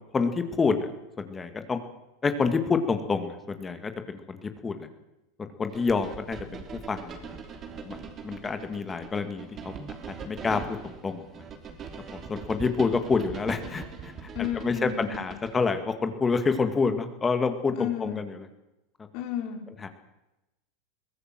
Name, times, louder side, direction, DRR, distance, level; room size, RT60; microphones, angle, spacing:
voice 1, 0.1-0.8 1.2-1.8 2.2-4.9 5.4-7.4 7.8-8.0 8.2-9.7 10.1-11.3 12.3-14.3 14.6-18.5 19.8-19.9, left 4 dB, 20° left, 8 dB, 2.2 m, -28 dB
sound 1, 5.7-15.7, right 5 dB, 30° right, 3.2 m, -41 dB
voice 2, 14.3-15.3 17.8-18.2 19.1-19.8, left 8 dB, 55° left, 4 dB, 4.3 m, -33 dB
22.5 x 16.5 x 7.7 m, 0.95 s
supercardioid pair, 125°, 0 cm